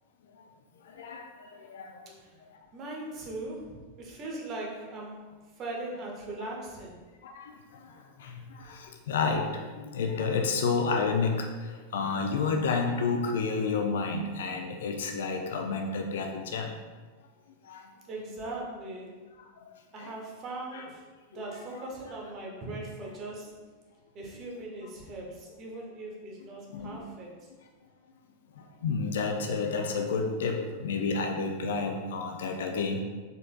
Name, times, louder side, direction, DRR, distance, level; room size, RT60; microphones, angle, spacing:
voice 1, 0.9-2.0 6.4-6.5 7.2-7.5 8.2-16.7 17.7-17.8 20.0-20.1 20.7-20.8 26.7-27.0 28.6-33.0, left 4 dB, 60° left, 4 dB, 0.4 m, -30 dB
voice 2, 2.7-5.2 5.6-7.0 18.1-19.1 19.9-21.0 21.3-23.5 24.1-27.4, right 2 dB, 30° right, -2 dB, 0.9 m, -39 dB
4.2 x 3.9 x 2.2 m, 1.4 s
figure-of-eight pair, 90°, 0 cm